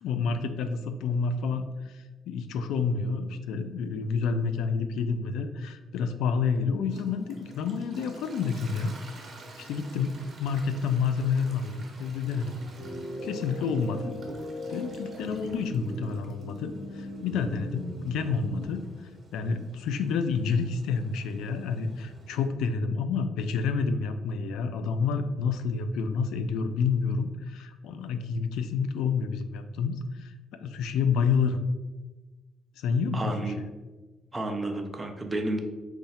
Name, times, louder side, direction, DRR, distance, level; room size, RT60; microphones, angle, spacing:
voice 1, 0.0-8.9 9.6-12.6 13.2-14.0 14.7-18.8 19.3-31.7 32.8-33.7, left 5 dB, 85° left, 9 dB, 0.3 m, -29 dB
Toilet flush, 6.9-22.5, right 2 dB, 45° right, 1.0 m, -49 dB
sound 1, 12.8-18.7, equal, 45° left, 1.4 m, -39 dB
voice 2, 33.1-33.6 34.3-35.6, right 2 dB, 20° right, 4 dB, 0.6 m, -31 dB
4.7 x 2.1 x 4.1 m, 1.2 s
cardioid pair, 90°, 0 cm